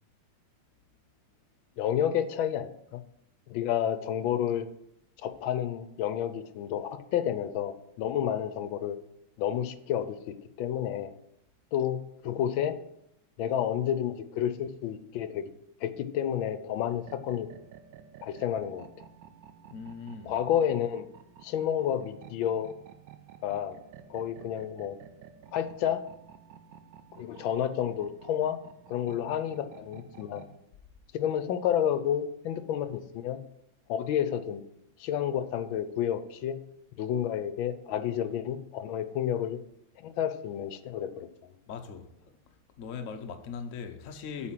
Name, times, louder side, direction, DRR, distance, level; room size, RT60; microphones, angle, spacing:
voice 1, 1.8-3.0 3.5-4.7 5.2-9.0 9.4-11.1 11.7-12.0 12.2-12.8 13.4-15.5 15.8-17.5 18.2-19.1 20.3-21.1 21.4-22.7 23.4-23.8 24.1-25.0 25.5-26.0 27.2-28.6 28.9-30.4 31.1-33.4 33.9-34.6 35.0-36.6 37.0-39.6 40.0-41.3, left 10 dB, 75° left, 1.4 m, -30 dB
sound 1, 16.8-30.6, right 8 dB, 70° right, 1.2 m, -52 dB
voice 2, 19.7-20.3 41.7-42.1 42.8-44.5, left 6 dB, 60° left, 0.8 m, -39 dB
8.6 x 4.5 x 7.4 m
omnidirectional pair, 2.2 m